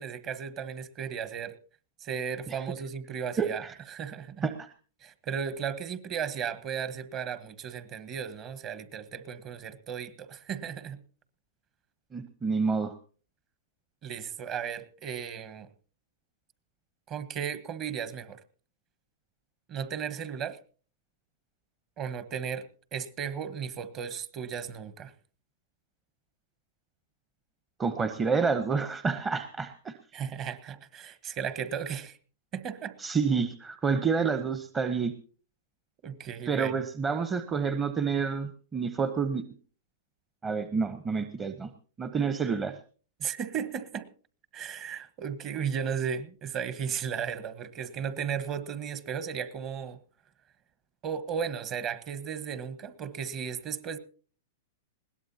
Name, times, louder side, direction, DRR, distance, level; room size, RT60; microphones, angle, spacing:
voice 1, 0.0-1.6 2.0-4.5 5.0-11.0 14.0-15.7 17.1-18.4 19.7-20.6 22.0-25.1 30.1-32.2 32.5-32.9 36.0-36.8 43.2-44.1 44.5-50.0 51.0-54.0, right 7 dB, 35° right, 13 dB, 1.3 m, -35 dB
voice 2, 3.4-3.8 4.4-4.7 12.1-12.9 27.8-29.9 33.0-35.1 36.5-39.4 40.4-41.7 42.0-42.7, right 5 dB, 20° right, 10 dB, 0.9 m, -28 dB
21.0 x 17.5 x 2.8 m, 0.40 s
hypercardioid pair, 120°, 0 cm